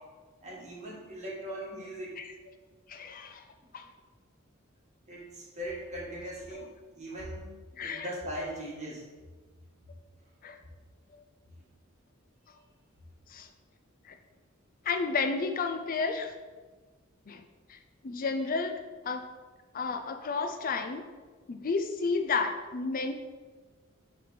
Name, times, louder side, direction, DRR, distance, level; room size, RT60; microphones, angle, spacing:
voice 1, 0.4-2.2 5.1-9.1, right 1 dB, 35° right, -4 dB, 1.9 m, -40 dB
voice 2, 2.9-3.4 3.7-3.9 6.5-6.7 7.8-8.1 10.4-10.6 11.1-11.2 13.3-13.5 14.0-14.2 14.8-16.3 17.3-17.4 17.7-17.8 18.0-19.2 19.7-21.0 21.5-23.1, left 4 dB, 45° left, 7 dB, 0.4 m, -32 dB
6.6 x 3.4 x 5.9 m, 1.3 s
head